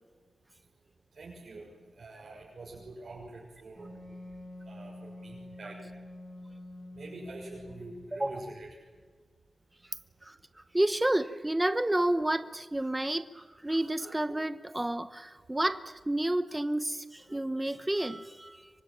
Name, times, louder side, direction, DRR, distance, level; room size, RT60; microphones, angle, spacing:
voice 1, 1.1-4.3 4.6-5.8 6.9-8.7, right 2 dB, 65° right, -2 dB, 6.5 m, -46 dB
Wind instrument woodwind instrument, 3.8-8.2, left 1 dB, 10° left, 6.4 m, -47 dB
voice 2, 8.1-8.5 10.2-10.4 10.7-18.7, right 1 dB, 15° right, 11 dB, 1.0 m, -30 dB
25.5 x 24.5 x 9.0 m, 1.6 s
wide cardioid pair, 75°, 0 cm